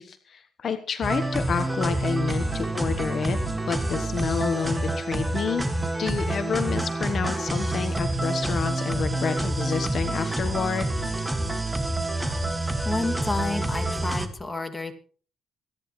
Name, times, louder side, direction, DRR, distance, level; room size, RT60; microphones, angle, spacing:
voice 1, 0.0-3.4 3.7-5.7 6.0-10.9, left 6 dB, 50° left, 8 dB, 1.3 m, -29 dB
sound 1, 1.0-14.3, right 2 dB, 15° right, 2.0 m, -27 dB
voice 2, 12.8-15.0, left 2 dB, 15° left, 6 dB, 2.5 m, -30 dB
26.0 x 10.5 x 3.2 m, 0.41 s
cardioid pair, 90°, 0 cm